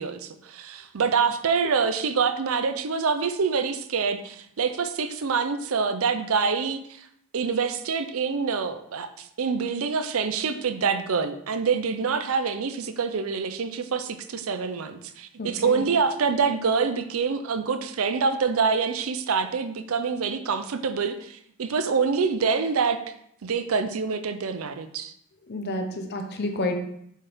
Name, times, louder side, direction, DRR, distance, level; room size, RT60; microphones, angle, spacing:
voice 1, 0.0-7.1 7.3-23.0 23.4-25.1, right 5 dB, 75° right, 10 dB, 0.5 m, -26 dB
voice 2, 15.4-15.8 25.5-26.8, left 2 dB, 50° left, 4 dB, 0.8 m, -30 dB
7.3 x 4.3 x 3.5 m, 0.72 s
head